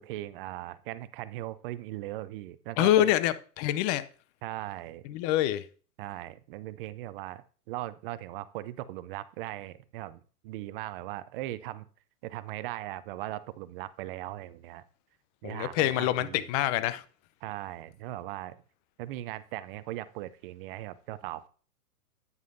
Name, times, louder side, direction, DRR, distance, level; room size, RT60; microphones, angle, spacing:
voice 1, 0.0-3.1 4.4-5.1 6.0-11.9 12.2-14.8 15.4-16.5 17.4-18.6 19.0-21.5, right 15 dB, 40° right, 0.6 m, -39 dB
voice 2, 2.8-4.0 5.1-5.6 15.4-17.0, left 13 dB, 30° left, 0.5 m, -26 dB
9.7 x 9.4 x 2.6 m
hypercardioid pair, 120°, 45 cm